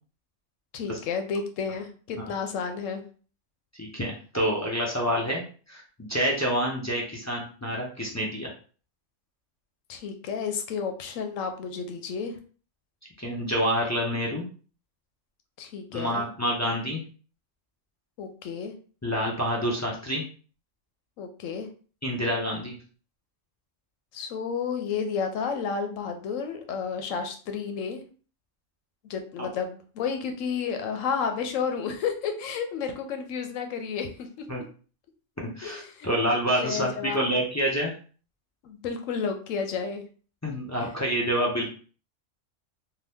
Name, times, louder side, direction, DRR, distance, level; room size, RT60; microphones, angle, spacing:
voice 1, 0.7-3.0 9.9-12.4 15.6-16.2 18.2-18.7 21.2-21.7 24.1-28.0 29.1-34.4 35.6-36.1 36.6-37.3 38.6-40.0 40.8-40.9, left 6 dB, 85° left, 6 dB, 1.0 m, -31 dB
voice 2, 3.8-5.4 5.7-8.5 13.2-14.4 15.9-17.0 19.0-20.2 22.0-22.7 29.4-29.5 34.5-34.6 35.6-37.9 40.4-41.7, equal, 20° left, -3 dB, 0.4 m, -27 dB
2.8 x 2.2 x 3.4 m, 0.40 s
omnidirectional pair, 1.3 m